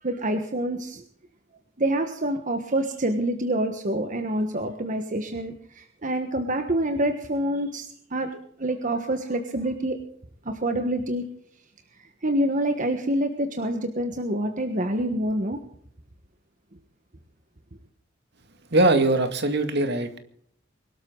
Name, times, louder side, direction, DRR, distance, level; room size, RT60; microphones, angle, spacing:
voice 1, 0.0-1.0 1.8-10.0 10.4-11.3 12.2-15.6, right 1 dB, 45° right, 5 dB, 1.4 m, -27 dB
voice 2, 18.7-20.2, right 2 dB, 60° right, 7 dB, 2.1 m, -21 dB
23.0 x 12.5 x 3.9 m, 0.63 s
head